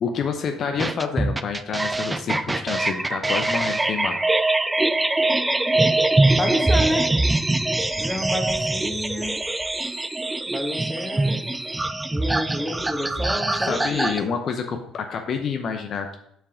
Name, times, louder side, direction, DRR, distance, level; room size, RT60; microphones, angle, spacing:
voice 1, 0.0-4.2 13.6-16.2, left 6 dB, 50° left, 5 dB, 0.7 m, -28 dB
sound 1, 0.8-14.2, right 2 dB, 15° right, 0.4 m, -23 dB
voice 2, 6.3-7.1 8.0-9.3 10.5-11.4 12.1-14.1, equal, 5° left, 3 dB, 1.4 m, -29 dB
5.9 x 4.7 x 5.0 m, 0.76 s
hypercardioid pair, 60°, 0 cm